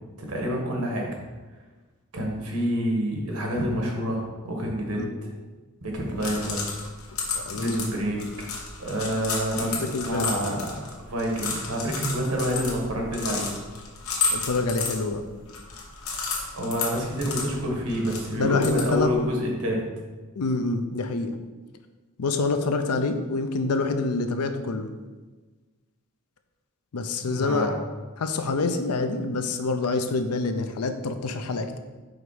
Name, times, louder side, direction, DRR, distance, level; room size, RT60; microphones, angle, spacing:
voice 1, 0.2-1.1 2.1-5.0 5.8-6.7 7.5-8.5 8.8-10.7 11.0-13.5 16.5-19.8 27.2-27.7, equal, 85° right, 0 dB, 1.4 m, -28 dB
sound 1, 5.9-19.2, left 4 dB, 70° left, 1.1 m, -33 dB
voice 2, 7.3-7.9 9.6-10.6 14.3-15.2 18.3-19.1 20.4-21.4 22.2-24.9 26.9-27.7 28.2-31.8, left 3 dB, 90° left, 8 dB, 0.6 m, -27 dB
5.1 x 3.9 x 4.8 m, 1.3 s
head